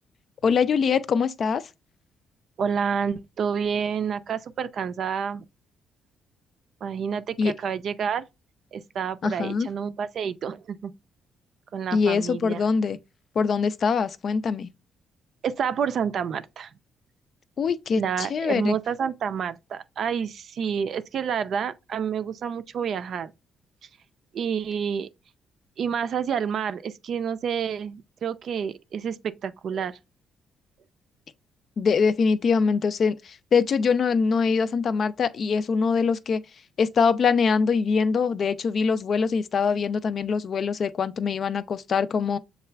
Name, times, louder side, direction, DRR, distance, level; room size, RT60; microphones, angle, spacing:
voice 1, 0.4-1.7 7.4-7.5 9.2-9.7 11.9-13.0 13.4-14.7 17.6-18.8 31.8-36.4 36.8-42.4, left 5 dB, 50° left, 0.4 m, -23 dB
voice 2, 2.6-5.4 6.8-8.2 8.7-10.9 11.7-12.6 15.4-16.7 18.0-23.3 24.3-25.1 25.8-30.0, right 7 dB, 60° right, 0.4 m, -29 dB
6.6 x 2.3 x 3.2 m
cardioid pair, 90°, 0 cm